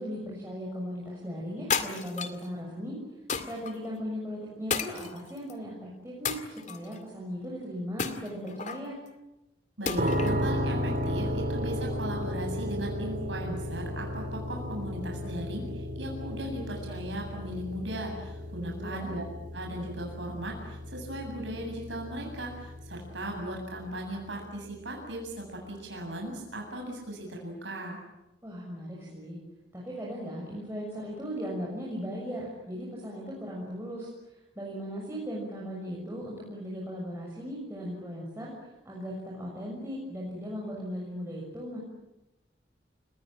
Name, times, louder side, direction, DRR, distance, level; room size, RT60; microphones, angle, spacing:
voice 1, 0.0-3.0 3.4-9.0 18.6-19.2 28.4-29.4 29.7-34.1 34.5-38.5 38.8-41.8, equal, 15° right, -4 dB, 6.7 m, -37 dB
sound 1, 1.7-2.5 3.3-3.7 4.7-5.5 6.2-7.0 8.0-8.9 9.9-10.4, left 6 dB, 40° left, 2.2 m, -32 dB
voice 2, 9.8-19.2 19.5-28.0, right 1 dB, 80° right, 0 dB, 7.9 m, -37 dB
sound 2, 10.0-24.8, equal, 45° right, 4.5 m, -34 dB
30.0 x 20.5 x 9.0 m, 0.96 s
head